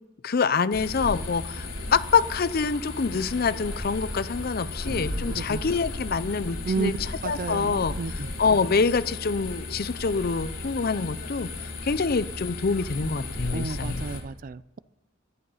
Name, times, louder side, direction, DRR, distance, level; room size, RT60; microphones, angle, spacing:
voice 1, 0.2-11.5 11.8-14.0, left 5 dB, 45° left, 15 dB, 0.5 m, -26 dB
sound 1, 0.7-14.2, left 2 dB, 80° left, 2.8 m, -35 dB
voice 2, 5.3-5.6 6.7-7.0 7.2-8.1 13.5-14.8, right 4 dB, 40° right, 18 dB, 0.4 m, -31 dB
13.5 x 11.0 x 5.6 m, 1.1 s
head